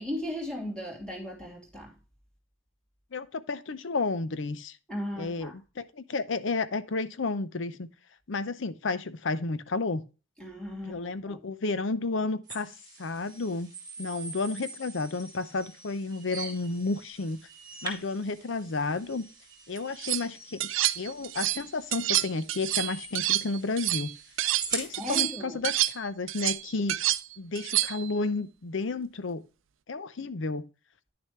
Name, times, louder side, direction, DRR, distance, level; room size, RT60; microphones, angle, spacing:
voice 1, 0.0-1.9 4.9-5.5 10.4-11.4 24.9-25.7, left 1 dB, 5° left, 2.7 m, -37 dB
voice 2, 3.1-4.8 5.2-7.9 8.3-10.0 10.9-12.7 13.0-13.7 14.0-17.4 17.8-19.3 19.7-20.7 21.0-24.1 24.7-27.0 27.4-29.4 29.9-30.6, left 3 dB, 70° left, 0.7 m, -32 dB
sound 1, 12.5-25.2, right 4 dB, 20° right, 2.2 m, -43 dB
sound 2, 19.8-20.2 20.6-21.6 21.9-24.7 24.9-28.1, right 15 dB, 80° right, 0.5 m, -28 dB
9.8 x 6.6 x 3.2 m
head